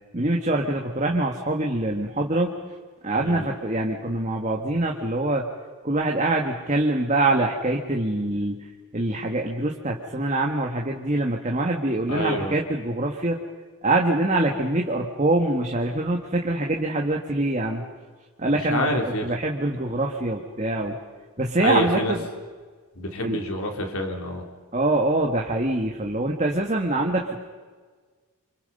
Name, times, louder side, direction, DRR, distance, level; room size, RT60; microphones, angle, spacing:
voice 1, 0.1-2.6 3.0-5.5 5.8-8.6 8.9-13.4 13.8-17.8 18.4-21.0 21.4-22.2 23.2-23.4 24.7-27.5, right 2 dB, 35° right, 1 dB, 1.7 m, -24 dB
voice 2, 3.2-3.5 12.1-12.5 18.5-19.3 21.6-22.1 23.0-24.4, left 1 dB, 75° left, 3 dB, 3.7 m, -27 dB
29.5 x 25.5 x 5.4 m, 1.5 s
head